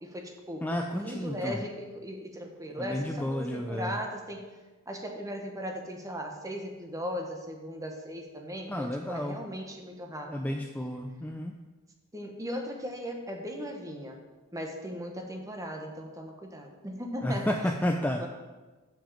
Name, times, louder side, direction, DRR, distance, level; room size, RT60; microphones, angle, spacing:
voice 1, 0.0-0.7 0.9-4.5 4.9-10.6 12.1-14.2 14.5-17.7 18.2-18.3, equal, 15° right, 3 dB, 1.1 m, -38 dB
voice 2, 0.6-1.6 2.8-4.0 8.7-9.4 10.3-11.6 17.2-18.2, left 1 dB, 5° left, 2 dB, 0.4 m, -31 dB
7.3 x 6.0 x 7.1 m, 1.2 s
head